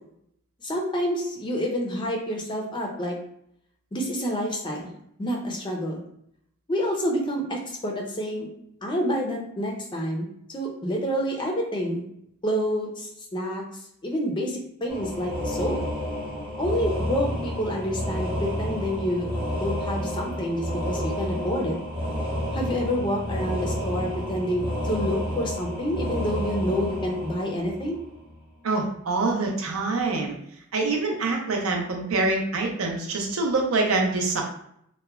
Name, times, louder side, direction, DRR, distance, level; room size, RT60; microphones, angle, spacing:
voice 1, 0.6-3.2 3.9-4.9 5.2-6.0 6.7-8.5 8.8-12.0 12.4-13.6 14.0-15.8 16.6-21.8 22.5-28.0, equal, 20° left, 1 dB, 0.4 m, -28 dB
sound 1, 14.9-28.3, equal, 25° right, 0.7 m, -30 dB
voice 2, 28.6-30.4 30.7-34.4, right 3 dB, 75° right, 1 dB, 0.6 m, -25 dB
2.8 x 2.1 x 2.3 m, 0.72 s
head